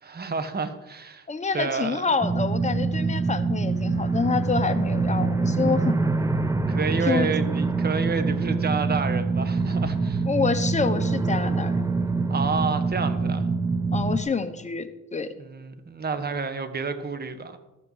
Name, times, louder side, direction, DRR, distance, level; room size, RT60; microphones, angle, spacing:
voice 1, 0.0-1.3 1.5-2.0 6.7-10.2 12.3-13.4 15.4-17.6, right 4 dB, 30° right, 9 dB, 1.4 m, -29 dB
voice 2, 1.3-6.0 7.0-7.3 10.3-11.8 13.9-15.3, left 5 dB, 25° left, 8 dB, 1.2 m, -27 dB
sound 1, 2.2-14.2, right 3 dB, 10° right, 0.7 m, -25 dB
13.0 x 6.3 x 7.4 m, 1.0 s
cardioid pair, 90°, 30 cm